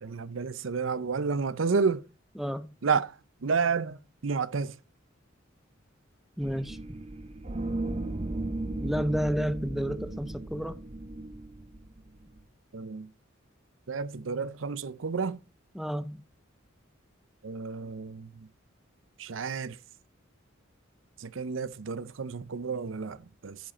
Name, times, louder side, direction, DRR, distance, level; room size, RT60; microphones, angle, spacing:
voice 1, 0.0-2.0 2.8-3.1 3.4-4.8 12.7-13.1 13.9-15.4 17.4-18.3 19.2-19.8 21.2-23.6, right 5 dB, 75° right, 0.6 m, -30 dB
voice 2, 2.4-2.7 6.4-6.8 8.8-10.8 15.7-16.2, equal, ahead, 0.5 m, -31 dB
sound 1, 6.4-12.4, right 2 dB, 30° right, 0.8 m, -36 dB
9.3 x 7.6 x 4.2 m
head